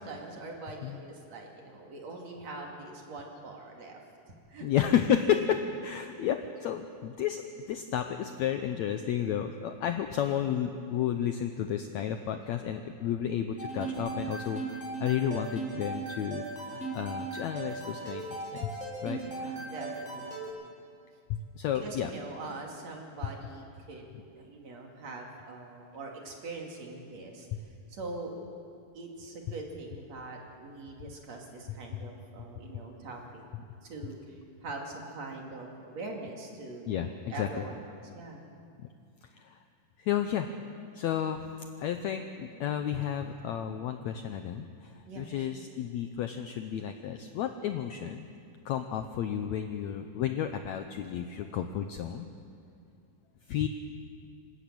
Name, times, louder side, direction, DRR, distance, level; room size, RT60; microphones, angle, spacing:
voice 1, 0.0-4.0 4.5-4.7 10.2-10.5 19.1-20.5 21.7-24.0 24.4-27.5 27.9-28.4 28.9-33.4 33.8-37.8 38.1-38.4 45.1-45.6, right 2 dB, 55° right, 0 dB, 3.3 m, -43 dB
voice 2, 4.6-19.2 21.3-22.1 27.5-27.6 32.0-32.1 36.9-37.5 38.8-38.9 39.4-39.6 40.0-40.5 40.9-41.4 41.8-48.3 48.6-52.3 53.5-53.7, left 9 dB, 75° left, 7 dB, 1.7 m, -32 dB
sound 1, 13.6-20.5, right 3 dB, ahead, 3.3 m, -38 dB
26.5 x 12.5 x 8.7 m, 2.4 s
omnidirectional pair, 4.0 m